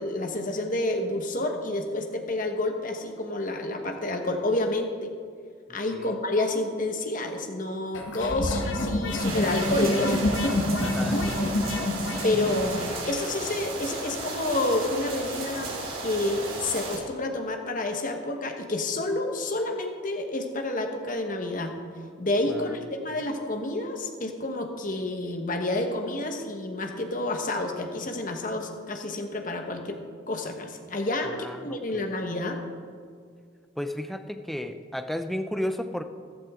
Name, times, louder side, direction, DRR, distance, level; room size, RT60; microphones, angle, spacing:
voice 1, 0.0-5.1 5.7-11.0 12.2-15.7 16.0-21.7 22.2-30.0 30.3-32.6, left 2 dB, 40° left, 4 dB, 1.2 m, -29 dB
sound 1, 7.9-12.9, left 1 dB, 70° left, 1.4 m, -27 dB
sound 2, 9.2-17.0, right 2 dB, 85° right, 3.0 m, -34 dB
voice 2, 10.8-11.6 22.5-22.7 23.1-23.2 31.3-32.1 33.8-36.0, left 1 dB, ahead, 7 dB, 0.5 m, -34 dB
14.5 x 12.0 x 3.7 m, 2.1 s
head